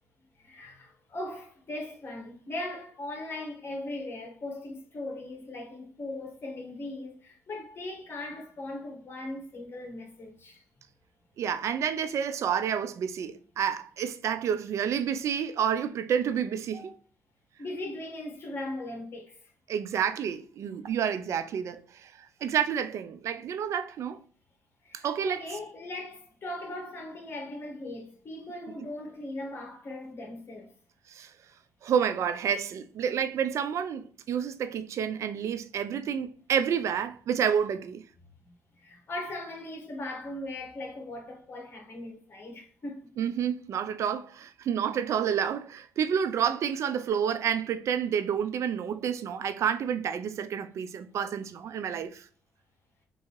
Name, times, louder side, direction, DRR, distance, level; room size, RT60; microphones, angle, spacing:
voice 1, 0.4-10.6 16.7-16.9 17.6-19.5 24.8-30.7 38.5-43.1, left 2 dB, 45° left, 1.6 m, -39 dB
voice 2, 11.4-16.9 19.7-22.1 22.4-24.2 24.9-25.4 31.1-31.3 31.8-38.0 43.2-52.2, right 8 dB, 65° right, 0.6 m, -29 dB
3.7 x 2.8 x 4.5 m
supercardioid pair, 70°, 5 cm